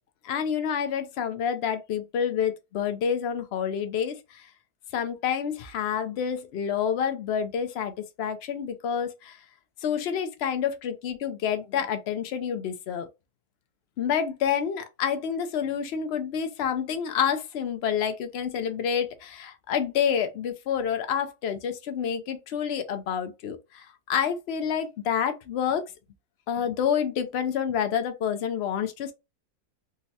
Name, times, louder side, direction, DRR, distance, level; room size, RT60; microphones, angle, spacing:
voice 1, 0.2-4.2 4.9-9.4 9.8-13.1 14.0-25.9 26.5-29.1, left 8 dB, 75° left, 0.5 m, -28 dB
3.8 x 2.1 x 2.7 m
omnidirectional pair, 1.7 m